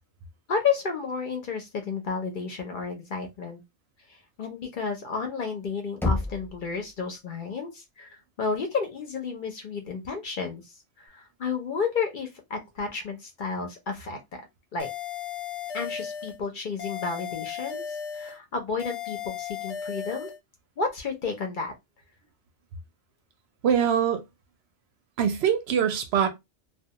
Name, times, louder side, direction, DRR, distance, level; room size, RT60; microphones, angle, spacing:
voice 1, 0.5-3.6 4.1-14.4 14.7-14.9 15.7-20.3 20.8-21.7, left 5 dB, 55° left, 0.7 m, -32 dB
Knock, 6.0-6.9, left 3 dB, 5° left, 0.4 m, -28 dB
sound 1, 14.8-16.4 16.8-18.4 18.8-20.4, left 8 dB, 85° left, 0.9 m, -35 dB
voice 2, 23.6-24.2 25.2-26.3, right 8 dB, 70° right, 0.8 m, -23 dB
2.3 x 2.2 x 2.7 m
omnidirectional pair, 1.2 m